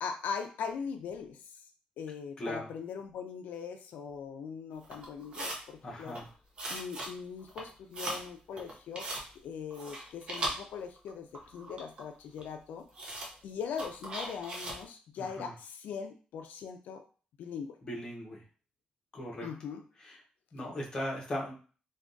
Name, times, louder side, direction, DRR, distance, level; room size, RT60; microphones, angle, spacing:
voice 1, 0.0-1.6 2.0-6.2 6.7-9.1 9.3-12.9 13.4-17.0 17.4-17.8 19.4-19.8, left 6 dB, 85° left, 5 dB, 0.3 m, -40 dB
voice 2, 2.4-2.7 5.8-6.3 15.2-15.5 17.8-18.4 19.1-19.5 20.0-20.2 20.5-21.6, equal, 25° left, -2 dB, 0.8 m, -38 dB
sound 1, 4.8-5.6 6.0-6.3 6.6-7.1 7.4-8.3 8.6-9.3 9.7-11.1 11.3-12.1 12.4-12.5 12.9-13.3 13.8-14.8, right 1 dB, 35° right, 0.6 m, -39 dB
3.4 x 2.2 x 2.5 m, 0.38 s
wide cardioid pair, 180°, 3 cm